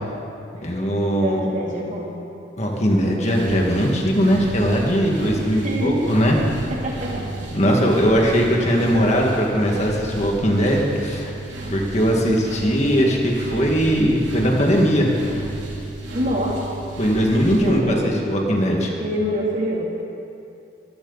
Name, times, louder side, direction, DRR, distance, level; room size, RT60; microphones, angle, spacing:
voice 1, 0.6-1.4 2.6-6.4 7.5-11.3 11.7-15.1 17.0-18.9, equal, 40° left, -1 dB, 2.0 m, -19 dB
voice 2, 1.2-2.2 5.6-6.2 6.7-7.2 16.1-16.6 17.6-18.2 19.0-19.8, equal, 45° right, -4 dB, 3.1 m, -25 dB
sound 1, 3.2-17.8, right 2 dB, 80° right, 3.1 m, -33 dB
23.5 x 14.0 x 4.1 m, 2.7 s
head